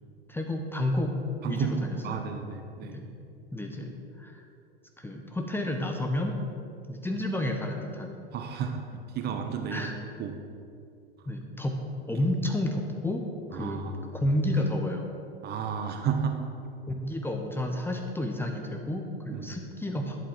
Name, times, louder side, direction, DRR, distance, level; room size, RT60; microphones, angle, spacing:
voice 1, 0.3-1.1 1.4-2.3 2.8-3.1 3.5-4.4 5.0-6.3 6.9-8.2 9.7-9.9 11.3-11.7 12.1-13.2 13.5-13.8 14.1-15.1 16.9-20.2, left 1 dB, 5° left, 3 dB, 1.0 m, -31 dB
voice 2, 1.4-3.0 8.3-9.9 10.2-10.3 13.5-14.1 15.4-16.5 19.3-19.5, right 6 dB, 30° right, 5 dB, 1.0 m, -32 dB
11.5 x 8.3 x 4.6 m, 2.5 s
figure-of-eight pair, 90°, 31 cm